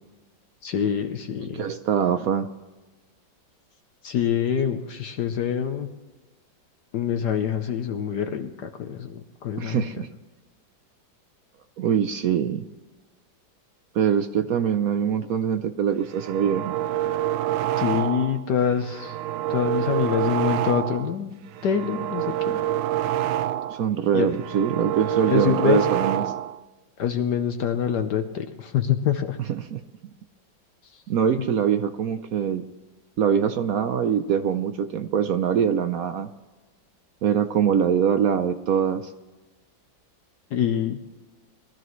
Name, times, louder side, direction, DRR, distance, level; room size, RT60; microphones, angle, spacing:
voice 1, 0.6-1.6 4.0-5.9 6.9-10.0 17.8-19.1 19.5-21.3 21.6-22.6 24.1-24.3 25.3-25.9 27.0-29.4 40.5-41.0, left 8 dB, 65° left, 6 dB, 1.3 m, -25 dB
voice 2, 1.4-2.5 9.6-10.1 11.8-12.6 13.9-16.8 23.7-26.2 29.5-29.8 31.1-32.6 33.2-36.3 37.2-39.1, right 8 dB, 65° right, 10 dB, 0.9 m, -23 dB
sound 1, 16.0-18.4 18.8-21.1 21.5-23.9 24.2-26.6, right 13 dB, 90° right, 1.4 m, -27 dB
22.0 x 13.5 x 3.1 m, 1.2 s
omnidirectional pair, 2.0 m